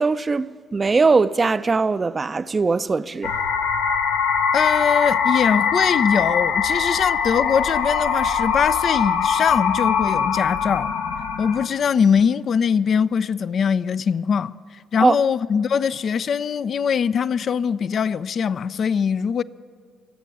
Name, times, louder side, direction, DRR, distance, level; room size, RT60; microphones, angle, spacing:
voice 1, 0.0-3.3 15.0-15.2, right 4 dB, 30° right, 0.5 m, -20 dB
sound 1, 3.2-11.7, left 6 dB, 70° left, 0.9 m, -22 dB
voice 2, 4.5-10.9 11.4-14.6 14.9-19.4, left 7 dB, 50° left, 0.4 m, -22 dB
22.5 x 8.3 x 7.5 m
hypercardioid pair, 45°, 0 cm